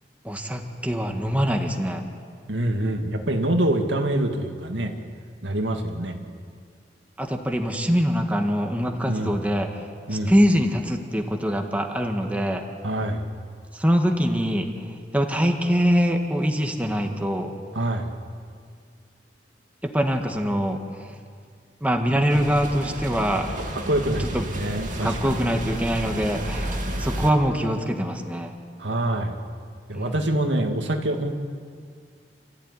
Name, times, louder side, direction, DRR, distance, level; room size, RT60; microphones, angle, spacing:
voice 1, 0.2-2.0 7.2-9.8 10.3-12.6 13.7-14.7 15.1-17.5 19.8-20.8 21.8-23.5 24.3-24.5 25.0-28.5 29.9-30.2, equal, 10° right, 3 dB, 1.7 m, -23 dB
voice 2, 2.5-4.9 5.4-6.2 9.1-9.4 10.1-10.3 12.8-13.3 17.7-18.1 23.7-25.4 28.8-29.4 29.9-31.3, right 1 dB, 90° right, 4 dB, 2.3 m, -25 dB
sound 1, 22.3-27.3, right 1 dB, 45° right, 2.7 m, -31 dB
28.0 x 15.0 x 9.8 m, 2.1 s
head